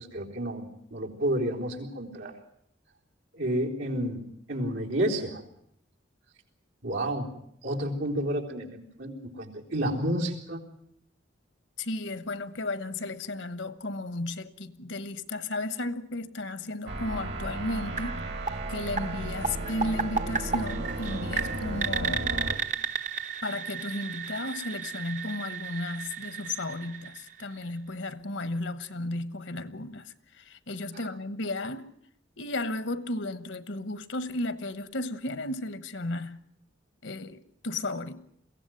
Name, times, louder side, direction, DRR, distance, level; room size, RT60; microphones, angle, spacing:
voice 1, 0.0-2.3 3.3-5.4 6.8-7.4 7.6-10.6, right 1 dB, 85° right, 4.0 m, -30 dB
voice 2, 11.8-18.2 18.7-22.4 23.4-31.9 32.4-36.5 37.0-38.2, left 2 dB, 75° left, 1.2 m, -34 dB
sound 1, 16.9-22.6, right 2 dB, 60° right, 2.3 m, -34 dB
sound 2, 18.0-27.8, right 6 dB, 40° right, 0.9 m, -34 dB
22.5 x 16.5 x 9.3 m
head